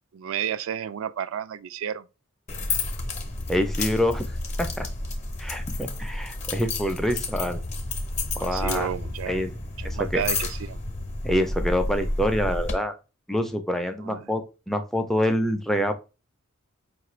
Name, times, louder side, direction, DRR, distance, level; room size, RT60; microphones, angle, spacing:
voice 1, 0.1-2.1 8.3-9.4 9.8-10.8 14.0-14.3, right 8 dB, 70° right, 0.3 m, -32 dB
sound 1, 2.5-12.7, left 2 dB, 35° left, 0.7 m, -31 dB
voice 2, 3.5-4.3 4.6-4.9 5.4-7.6 8.4-8.9 9.3-9.5 9.8-10.2 11.2-12.9 13.3-15.9, equal, ahead, 0.4 m, -26 dB
5.0 x 2.5 x 3.0 m
head